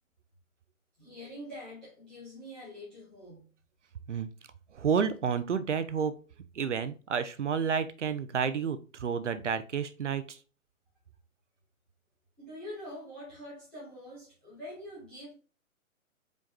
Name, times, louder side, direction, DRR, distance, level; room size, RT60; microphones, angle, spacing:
voice 1, 1.0-3.5 12.4-15.3, left 1 dB, ahead, 0.5 m, -45 dB
voice 2, 4.7-6.1 6.5-10.4, right 6 dB, 60° right, 0.7 m, -30 dB
5.1 x 4.7 x 2.2 m
figure-of-eight pair, 130°, 41 cm